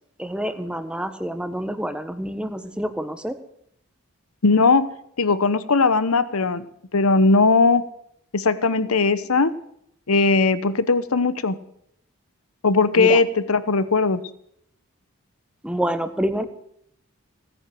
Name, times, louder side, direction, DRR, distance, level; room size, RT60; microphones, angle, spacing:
voice 1, 0.2-3.4 13.0-13.2 15.6-16.5, equal, 5° right, 8 dB, 1.3 m, -27 dB
voice 2, 4.4-4.9 5.2-6.6 6.9-7.8 8.3-9.5 10.1-11.6 12.6-14.2, left 3 dB, 85° left, 14 dB, 1.0 m, -19 dB
17.5 x 9.7 x 7.7 m, 0.71 s
head